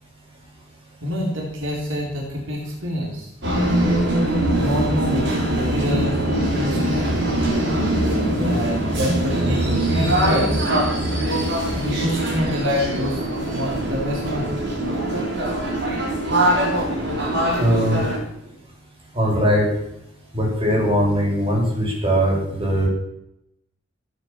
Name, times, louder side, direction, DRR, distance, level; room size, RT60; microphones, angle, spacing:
voice 1, 1.0-3.3 4.6-6.2 6.5-7.2 8.4-10.7 11.7-13.2 13.5-14.6 18.4-18.6, left 1 dB, 80° right, -1 dB, 3.8 m, -26 dB
sound 1, 3.4-18.2, right 1 dB, 65° right, 5.2 m, -22 dB
voice 2, 17.6-18.0 19.1-19.7 20.3-22.9, equal, 30° right, -2 dB, 7.2 m, -20 dB
15.5 x 9.7 x 7.5 m, 0.79 s
head